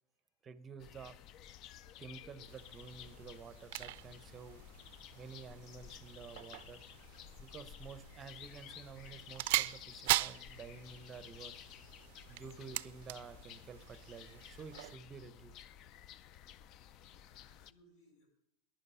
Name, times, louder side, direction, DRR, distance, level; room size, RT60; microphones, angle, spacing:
voice 1, 0.4-1.2 2.0-4.6 5.2-6.8 7.4-11.7 12.3-15.7, right 5 dB, 20° right, 14 dB, 0.7 m, -51 dB
sound 1, 0.8-17.7, left 10 dB, 40° left, 0.4 m, -54 dB
sound 2, 2.5-15.0, right 18 dB, 65° right, 0.4 m, -41 dB
voice 2, 15.8-16.6 17.1-18.3, equal, 55° left, 0 dB, 6.5 m, -71 dB
15.0 x 10.5 x 5.6 m, 0.82 s
supercardioid pair, 155°, 0 cm